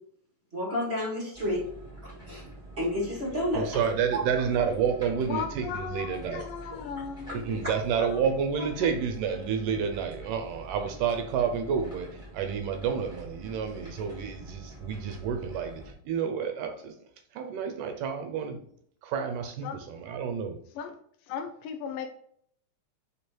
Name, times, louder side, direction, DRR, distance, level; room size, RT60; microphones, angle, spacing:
voice 1, 0.5-1.7 2.3-2.4 2.8-3.8 4.1-4.2 6.9-7.4, left 1 dB, 25° right, 1.4 m, -30 dB
sound 1, 1.3-15.9, right 1 dB, ahead, 2.1 m, -46 dB
voice 2, 3.5-6.5 7.5-12.1 12.3-16.9 17.4-18.6 19.0-20.6, right 7 dB, 75° right, 2.2 m, -29 dB
voice 3, 5.2-7.7 8.0-8.2 8.6-8.9 19.6-19.8 20.8-21.0 21.3-22.1, left 7 dB, 80° left, 2.2 m, -37 dB
5.1 x 4.7 x 4.4 m
omnidirectional pair, 4.0 m